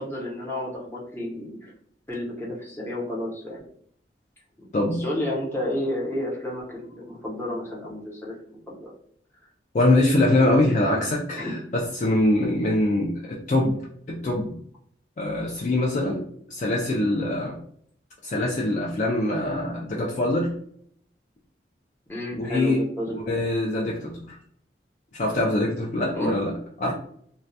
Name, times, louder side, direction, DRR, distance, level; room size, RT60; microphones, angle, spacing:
voice 1, 0.0-1.7 2.1-3.6 4.6-4.7 5.0-8.3 8.7-8.9 10.7-11.0 11.4-11.6 22.1-23.4 26.1-26.3, left 1 dB, 10° left, -5 dB, 0.7 m, -31 dB
voice 2, 4.7-5.0 9.7-14.6 15.2-17.6 18.2-20.5 22.3-22.8 23.1-24.4 25.1-26.9, left 1 dB, 40° left, -2 dB, 0.3 m, -24 dB
2.2 x 2.1 x 2.6 m, 0.64 s
head